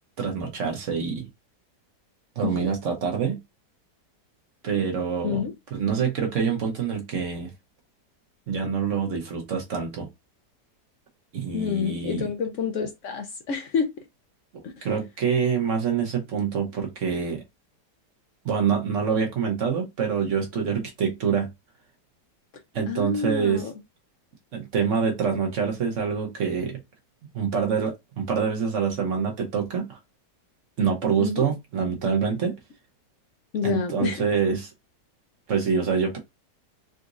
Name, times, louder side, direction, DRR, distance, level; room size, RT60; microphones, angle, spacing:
voice 1, 0.2-1.3 2.4-3.4 4.6-7.5 8.5-10.1 11.3-12.3 14.8-17.4 18.4-21.5 22.7-23.6 24.5-26.8 27.3-30.0 30.8-32.6 33.6-34.7 35.5-36.2, right 6 dB, 55° right, 1.0 m, -26 dB
voice 2, 2.4-2.7 5.2-5.5 11.5-14.0 14.6-14.9 22.9-23.7 31.2-31.5 33.5-34.2, left 6 dB, 70° left, 0.7 m, -28 dB
3.9 x 2.5 x 2.4 m
omnidirectional pair, 1.8 m